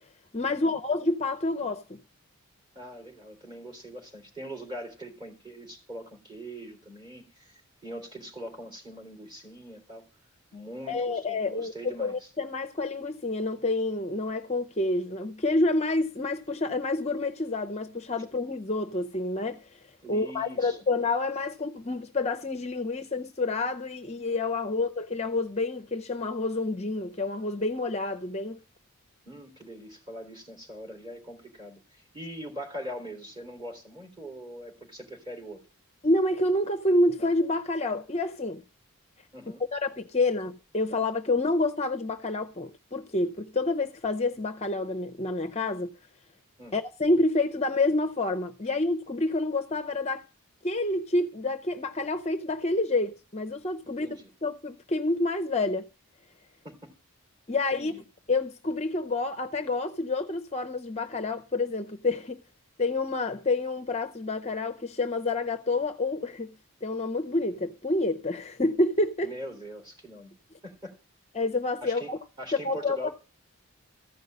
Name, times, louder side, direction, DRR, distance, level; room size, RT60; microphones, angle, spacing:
voice 1, 0.3-2.0 10.9-19.8 20.1-28.6 36.0-38.6 39.7-45.9 46.7-50.2 50.6-54.1 54.4-55.9 57.5-57.9 58.3-62.4 62.8-66.5 66.8-69.3 71.3-72.2 72.5-73.1, left 2 dB, 30° left, 0.6 m, -28 dB
voice 2, 2.8-10.1 10.5-12.3 20.0-20.8 29.3-35.6 39.3-39.6 46.6-46.8 54.0-54.3 56.6-56.9 57.7-58.0 69.2-70.3 70.6-71.0 71.8-73.1, equal, 20° right, 3.5 m, -42 dB
14.5 x 5.4 x 9.3 m
head